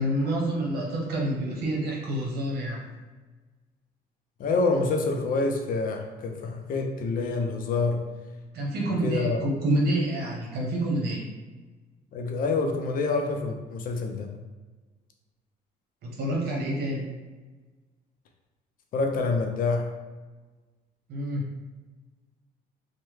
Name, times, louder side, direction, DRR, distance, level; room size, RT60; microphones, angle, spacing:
voice 1, 0.0-2.8 8.5-11.3 16.0-17.1 21.1-21.5, right 1 dB, 70° right, -2 dB, 1.0 m, -28 dB
voice 2, 4.4-8.0 9.0-9.4 12.1-14.3 18.9-19.9, left 3 dB, 55° left, 3 dB, 0.5 m, -27 dB
3.1 x 2.1 x 3.2 m, 1.3 s
cardioid pair, 110°, 17 cm